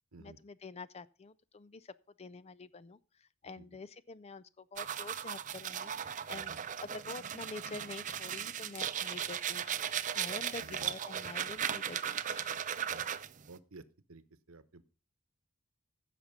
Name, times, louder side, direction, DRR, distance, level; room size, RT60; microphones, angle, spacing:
voice 1, 0.2-1.9 2.2-3.0 3.4-9.9 10.1-12.6, left 3 dB, 30° left, 0.4 m, -47 dB
voice 2, 3.4-3.8 6.3-6.6 10.6-11.0 11.5-11.8 12.9-13.2 13.5-13.8 14.1-14.9, right 2 dB, 70° right, 1.0 m, -54 dB
sound 1, 4.8-13.5, right 9 dB, 35° right, 0.5 m, -37 dB
15.5 x 5.9 x 5.2 m
head